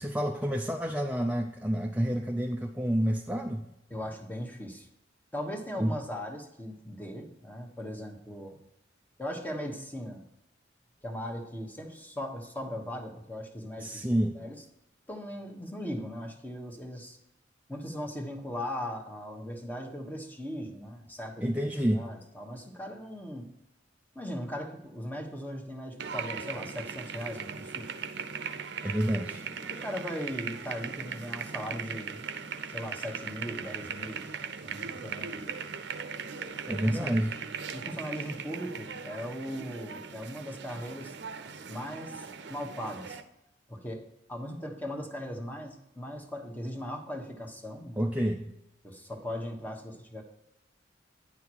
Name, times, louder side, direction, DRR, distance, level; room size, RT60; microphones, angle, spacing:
voice 1, 0.0-3.7 5.8-6.0 13.8-14.4 21.4-22.1 28.8-29.5 36.7-37.3 48.0-48.5, equal, 10° right, 1 dB, 0.5 m, -29 dB
voice 2, 3.9-4.9 5.3-8.6 9.2-10.3 11.0-14.0 14.3-14.6 15.1-17.2 17.7-21.5 21.9-23.5 24.1-28.0 29.7-32.2 32.7-34.3 34.6-35.6 36.4-37.1 37.7-41.1 41.7-43.2 43.7-48.0 48.8-50.2, equal, 10° left, 3 dB, 1.1 m, -39 dB
sound 1, 26.0-43.2, right 6 dB, 65° right, 0.7 m, -39 dB
9.6 x 5.6 x 4.6 m, 0.87 s
head